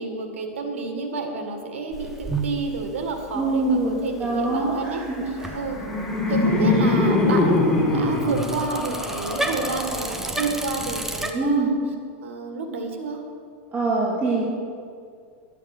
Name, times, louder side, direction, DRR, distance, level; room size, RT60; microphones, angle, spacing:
voice 1, 0.0-5.0 5.5-5.8 6.3-11.8 12.2-13.2, right 4 dB, 90° right, 4 dB, 2.0 m, -30 dB
Bicycle, 1.9-11.3, right 2 dB, 5° right, 1.1 m, -34 dB
voice 2, 3.3-5.6 11.3-11.7 13.7-14.4, right 3 dB, 25° right, -6 dB, 2.5 m, -24 dB
Laughter, 5.3-10.4, left 2 dB, 10° left, 2.8 m, -23 dB
12.0 x 8.4 x 6.7 m, 2.2 s
supercardioid pair, 120°, 7 cm